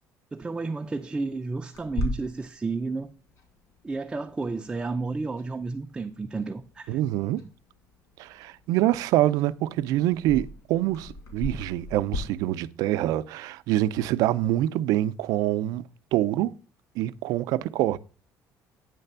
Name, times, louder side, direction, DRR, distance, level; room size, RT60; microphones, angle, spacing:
voice 1, 0.3-3.1 3.8-7.0, right 3 dB, 15° right, 0.4 m, -32 dB
Clock, 1.7-12.2, left 1 dB, 60° left, 2.6 m, -40 dB
voice 2, 6.9-7.4 8.2-15.8 16.1-16.5 17.0-18.0, right 14 dB, 75° right, 0.4 m, -25 dB
9.0 x 3.3 x 6.7 m
cardioid pair, 160°, 6 cm